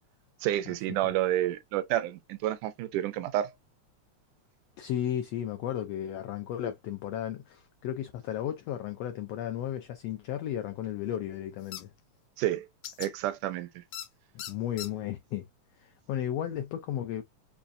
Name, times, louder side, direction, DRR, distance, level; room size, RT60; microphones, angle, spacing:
voice 1, 0.4-3.5 12.4-12.7 13.0-13.8, right 13 dB, 85° right, 2.2 m, -29 dB
voice 2, 4.8-11.9 14.3-15.5 15.7-17.2, left 11 dB, 90° left, 1.4 m, -34 dB
sound 1, 11.7-11.8 12.8-13.1 13.9-14.1 14.4-14.9, left 10 dB, 70° left, 1.6 m, -39 dB
6.9 x 2.4 x 2.5 m
omnidirectional pair, 3.5 m